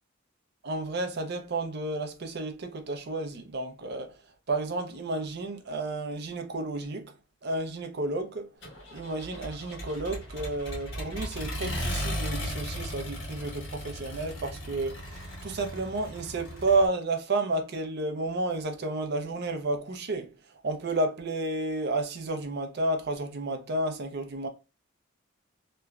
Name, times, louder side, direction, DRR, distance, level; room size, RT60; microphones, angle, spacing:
voice 1, 0.6-4.2 4.5-7.1 7.4-8.5 8.9-20.3 20.6-24.5, right 2 dB, 55° right, 0.5 m, -31 dB
Accelerating revving vroom, 8.6-16.9, equal, 75° left, 1.2 m, -36 dB
3.0 x 2.2 x 2.3 m
head